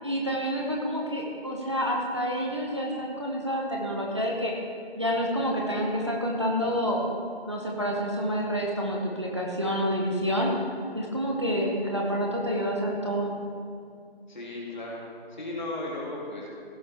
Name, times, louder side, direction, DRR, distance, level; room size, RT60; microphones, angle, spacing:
voice 1, 0.0-4.5 5.0-7.0 7.5-10.5 10.9-13.3, equal, 30° right, -2 dB, 0.8 m, -28 dB
voice 2, 14.3-16.5, left 2 dB, 45° left, -4 dB, 2.8 m, -36 dB
16.0 x 6.8 x 3.4 m, 2.3 s
figure-of-eight pair, 175°, 31 cm